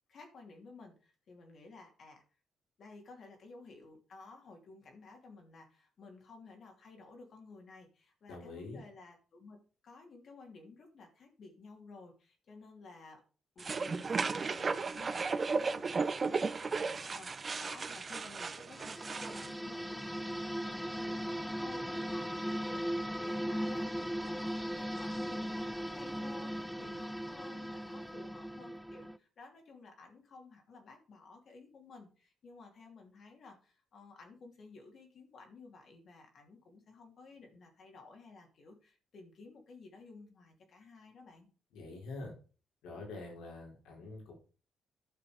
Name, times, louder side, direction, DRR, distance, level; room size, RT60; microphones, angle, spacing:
voice 1, 0.1-2.2 2.8-9.6 9.8-13.2 13.5-41.5, left 3 dB, 55° left, 2 dB, 2.9 m, -54 dB
voice 2, 8.3-8.8 41.7-42.3 42.8-44.3, left 3 dB, 85° left, 0 dB, 4.5 m, -45 dB
sound 1, 13.6-19.5, right 4 dB, 35° right, 0.7 m, -35 dB
sound 2, 18.7-29.2, equal, ahead, 0.5 m, -38 dB
11.5 x 6.0 x 5.0 m, 0.37 s
cardioid pair, 90°, 0 cm